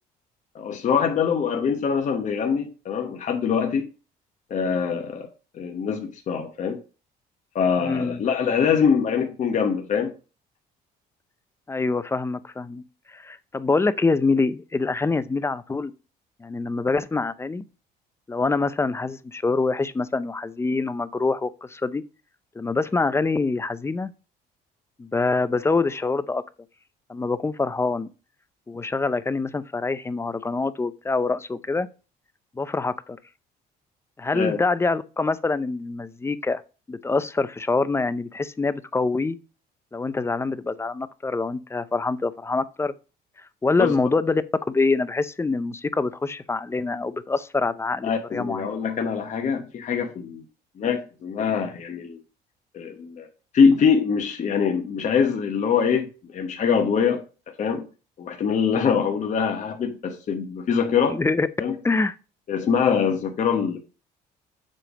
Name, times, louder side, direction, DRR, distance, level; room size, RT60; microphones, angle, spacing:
voice 1, 0.5-3.9 4.5-5.3 5.5-6.8 7.5-10.1 34.3-34.6 43.8-43.9 48.0-50.4 50.8-52.2 52.7-53.3 53.5-57.2 57.6-57.9 58.2-61.2 61.6-61.7 62.5-63.8, left 6 dB, 45° left, 1.1 m, -23 dB
voice 2, 7.8-8.2 11.7-12.8 13.1-15.9 16.4-17.6 18.3-22.0 22.6-24.1 25.0-26.4 27.1-28.1 28.7-31.9 32.6-33.2 34.2-36.6 36.9-39.4 39.9-42.9 43.6-44.4 44.7-48.7 61.1-61.5 61.8-62.1, left 3 dB, 15° left, 0.5 m, -25 dB
7.6 x 3.3 x 6.2 m
cardioid pair, 110°, 17 cm